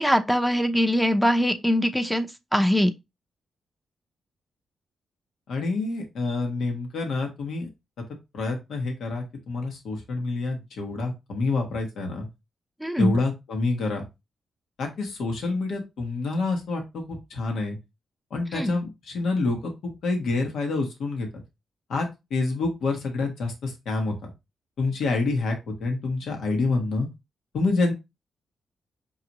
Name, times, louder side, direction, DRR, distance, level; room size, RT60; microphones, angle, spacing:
voice 1, 0.0-2.3 2.5-2.9 12.8-13.2 18.5-18.7, equal, ahead, 0.7 m, -22 dB
voice 2, 5.5-7.7 8.3-12.3 13.0-14.0 14.8-17.8 18.3-21.3 21.9-24.3 24.8-27.1 27.5-27.9, left 3 dB, 80° left, 1.2 m, -27 dB
5.7 x 2.5 x 2.9 m
cardioid pair, 75°, 0 cm